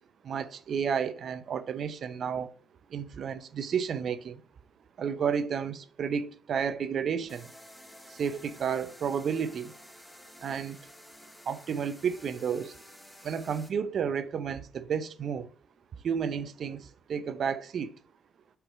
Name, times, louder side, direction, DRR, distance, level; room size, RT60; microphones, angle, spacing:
voice 1, 0.2-2.5 2.9-4.4 5.0-7.5 8.2-9.7 10.4-10.8 11.5-12.7 13.2-15.5 16.0-16.8 17.1-17.9, right 7 dB, 55° right, 0.6 m, -31 dB
sound 1, 7.3-13.7, equal, 10° left, 2.5 m, -52 dB
6.0 x 4.8 x 4.8 m
hypercardioid pair, 45°, 0 cm